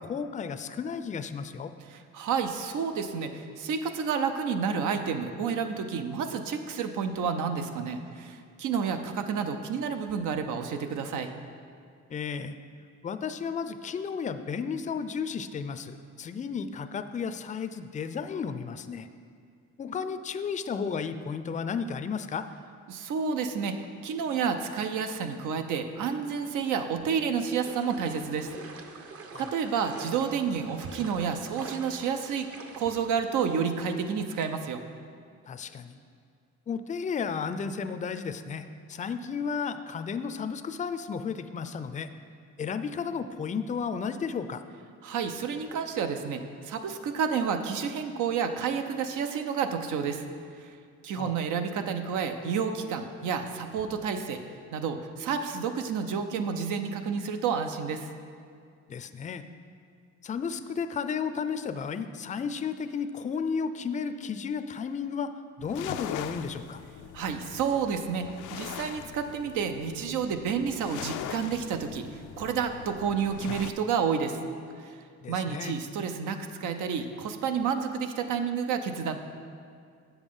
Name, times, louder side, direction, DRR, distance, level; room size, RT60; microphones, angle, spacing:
voice 1, 0.0-1.7 12.1-12.6 13.0-19.1 19.8-22.5 29.3-29.5 35.5-36.0 36.7-42.1 42.6-44.6 51.2-51.3 58.9-59.4 60.2-65.3 65.6-66.8 75.2-75.7, left 6 dB, 25° left, 10 dB, 0.4 m, -33 dB
voice 2, 1.9-11.3 22.9-28.5 29.4-32.5 32.8-34.8 45.0-50.2 50.6-50.7 51.0-54.4 54.7-58.1 67.1-74.4 74.8-75.0 75.3-79.2, right 6 dB, 80° right, 7 dB, 0.7 m, -30 dB
sound 1, 27.4-34.5, right 4 dB, 50° right, 0.9 m, -47 dB
sound 2, 65.6-73.7, left 10 dB, 85° left, 0.5 m, -41 dB
7.7 x 7.2 x 5.4 m, 2.2 s
cardioid pair, 90°, 30 cm